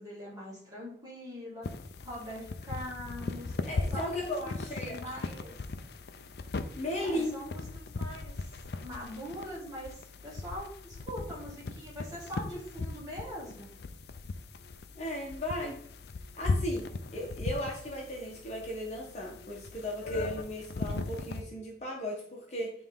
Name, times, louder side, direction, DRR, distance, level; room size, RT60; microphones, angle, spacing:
voice 1, 0.0-1.7 2.0-3.6 3.9-5.5 7.0-8.5 8.8-13.8, equal, 20° right, -6 dB, 2.4 m, -42 dB
sound 1, 1.6-21.4, left 3 dB, 60° left, 0.4 m, -38 dB
voice 2, 3.6-5.0 6.8-7.3 14.9-15.8 16.4-22.7, left 1 dB, 35° left, -1 dB, 1.1 m, -36 dB
8.9 x 3.4 x 3.6 m, 0.64 s
head